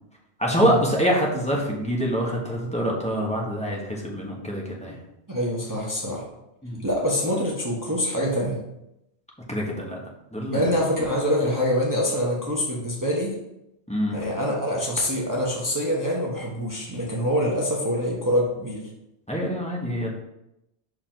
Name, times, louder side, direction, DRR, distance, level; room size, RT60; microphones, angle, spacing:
voice 1, 0.4-5.0 6.6-6.8 9.5-10.0 10.3-10.7 13.9-14.2 19.3-20.1, equal, 5° left, -3 dB, 1.1 m, -25 dB
voice 2, 5.3-6.3 6.8-8.6 10.5-13.4 14.1-18.8, equal, 15° right, -4 dB, 1.0 m, -25 dB
5.7 x 4.9 x 3.8 m, 0.85 s
omnidirectional pair, 1.2 m